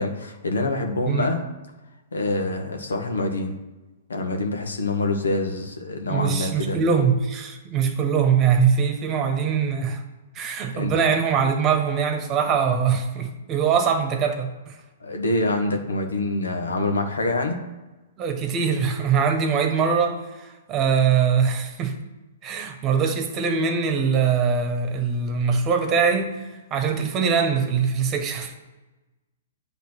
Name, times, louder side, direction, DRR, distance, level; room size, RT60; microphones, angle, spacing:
voice 1, 0.0-1.4 2.1-3.6 4.1-6.8 8.0-8.1 10.7-10.9 15.0-17.6, left 2 dB, 90° left, 4 dB, 1.3 m, -26 dB
voice 2, 6.1-10.0 10.3-14.8 18.2-21.9 22.4-28.5, right 6 dB, 30° right, 5 dB, 1.3 m, -22 dB
8.6 x 3.4 x 6.1 m, 1.1 s
hypercardioid pair, 130°, 0 cm